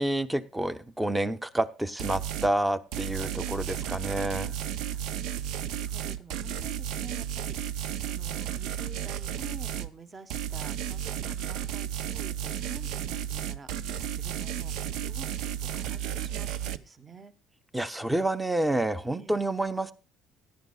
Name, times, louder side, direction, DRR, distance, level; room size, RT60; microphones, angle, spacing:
voice 1, 0.0-4.6 17.7-19.9, right 1 dB, 10° right, 11 dB, 0.8 m, -29 dB
sound 1, 2.0-2.5 2.9-9.9 10.3-16.8, right 10 dB, 80° right, 0.6 m, -33 dB
voice 2, 4.9-15.4 15.7-17.3 19.1-19.4, right 4 dB, 30° right, 11 dB, 1.2 m, -49 dB
17.0 x 10.5 x 2.4 m, 0.32 s
cardioid pair, 105°, 0 cm